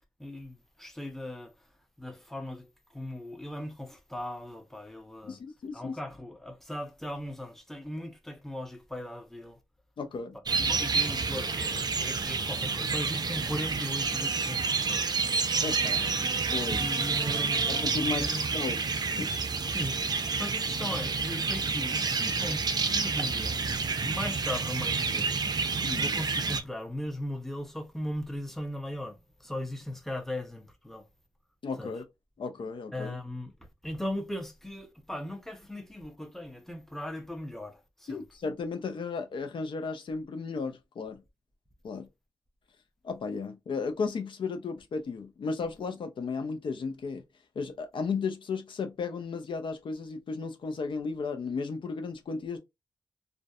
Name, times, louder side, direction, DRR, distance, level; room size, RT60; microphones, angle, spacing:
voice 1, 0.2-1.7 2.0-5.4 5.7-9.6 10.6-15.0 16.8-17.6 17.9-18.4 19.7-23.7 24.0-31.1 31.8-31.9 32.9-38.2, left 1 dB, 5° left, 0.7 m, -38 dB
voice 2, 5.3-6.0 10.0-10.4 10.8-10.9 15.6-16.2 16.5-16.9 17.7-18.8 19.2-19.3 25.8-26.1 31.6-32.0 32.4-33.2 38.1-41.2 41.8-42.1 43.0-47.2 47.6-52.6, left 4 dB, 65° left, 0.5 m, -34 dB
sound 1, 10.5-26.6, right 4 dB, 50° right, 0.4 m, -29 dB
2.5 x 2.1 x 2.3 m
cardioid pair, 50°, 9 cm